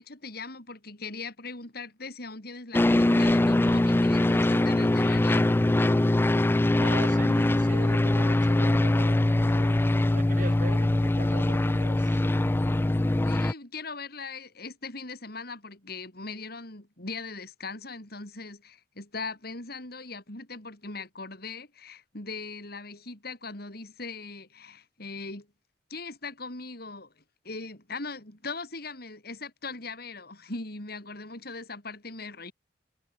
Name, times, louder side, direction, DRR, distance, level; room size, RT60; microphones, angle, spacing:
voice 1, 0.0-5.5 13.2-25.5 25.9-32.5, left 3 dB, 60° left, 5.2 m, -40 dB
sound 1, 2.7-13.5, left 1 dB, 10° left, 0.3 m, -23 dB
voice 2, 6.8-9.9 10.1-12.2, right 2 dB, 50° right, 7.3 m, -41 dB
head